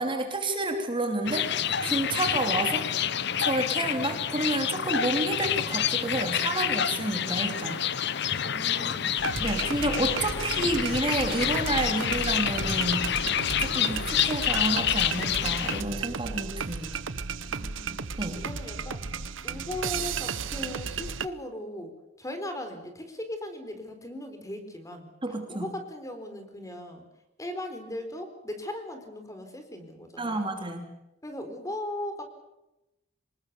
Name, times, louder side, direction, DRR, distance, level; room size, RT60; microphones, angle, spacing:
voice 1, 0.0-1.5 1.8-2.9 3.4-7.8 9.4-16.9 18.2-18.4 25.2-25.7 30.2-30.8, right 2 dB, 25° right, 4 dB, 3.1 m, -30 dB
sound 1, 1.2-15.8, left 9 dB, 60° left, 1.0 m, -28 dB
voice 2, 8.4-9.3 17.5-18.1 18.4-19.1 19.4-21.9 22.2-27.0 27.4-30.6 31.2-32.2, left 1 dB, 15° left, 7 dB, 4.2 m, -38 dB
sound 2, 9.2-21.3, right 5 dB, 80° right, 1.0 m, -34 dB
26.0 x 20.5 x 6.9 m, 0.94 s
head